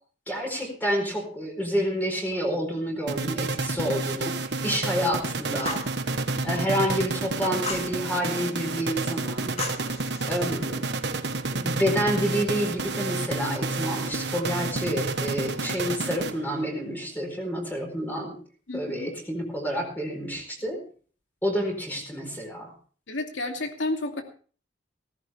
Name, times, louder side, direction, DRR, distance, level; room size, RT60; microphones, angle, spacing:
voice 1, 0.3-4.3 4.6-5.8 6.4-9.5 10.3-10.9 11.5-18.4 18.7-20.8 21.4-22.7, equal, 10° left, 1 dB, 4.4 m, -29 dB
sound 1, 3.1-16.7, right 3 dB, 65° right, 1.2 m, -30 dB
Fire, 5.6-5.9 7.6-7.9 9.6-10.5, left 4 dB, 35° left, 2.1 m, -35 dB
voice 2, 6.3-6.7 15.6-15.8 18.7-19.1 23.1-24.2, left 2 dB, 90° left, 3 dB, 2.7 m, -32 dB
16.5 x 15.0 x 3.5 m, 0.41 s
head